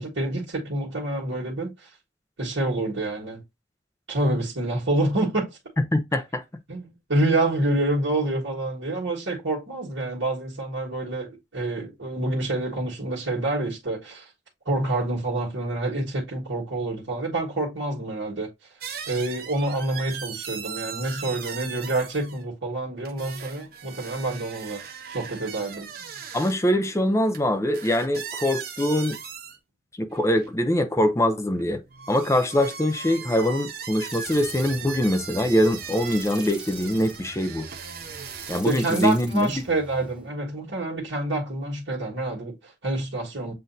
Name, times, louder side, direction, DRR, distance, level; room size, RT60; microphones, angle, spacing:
voice 1, 0.0-1.9 2.4-3.4 4.1-5.5 6.7-14.3 14.6-18.5 19.1-24.8 25.1-25.9 38.6-43.5, right 2 dB, 80° right, 1.6 m, -27 dB
voice 2, 5.9-6.4 26.3-29.2 30.0-31.8 32.1-37.7 38.5-39.5, left 1 dB, 15° left, 0.5 m, -23 dB
sound 1, 18.8-22.4 23.0-26.5 27.3-27.4 27.7-29.6 30.1-30.5 31.5-38.6, right 7 dB, 55° right, 0.8 m, -38 dB
sound 2, 34.0-40.3, right 2 dB, 5° right, 0.9 m, -44 dB
7.6 x 2.6 x 2.6 m
head